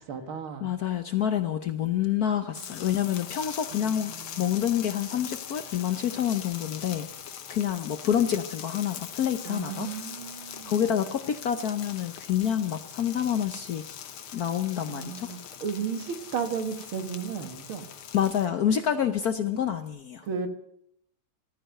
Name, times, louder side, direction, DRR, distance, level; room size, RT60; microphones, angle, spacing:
voice 1, 0.1-0.7 2.5-2.6 3.7-4.5 9.5-10.8 14.3-14.5 14.9-17.9 20.2-20.5, right 6 dB, 75° right, 6 dB, 2.4 m, -34 dB
voice 2, 0.6-4.1 4.4-7.1 7.5-9.9 10.6-13.8 14.3-15.3 18.1-20.3, left 9 dB, 60° left, 9 dB, 1.0 m, -27 dB
sound 1, 2.5-18.5, left 8 dB, 80° left, 1.9 m, -42 dB
14.5 x 13.5 x 6.6 m, 0.73 s
omnidirectional pair, 2.3 m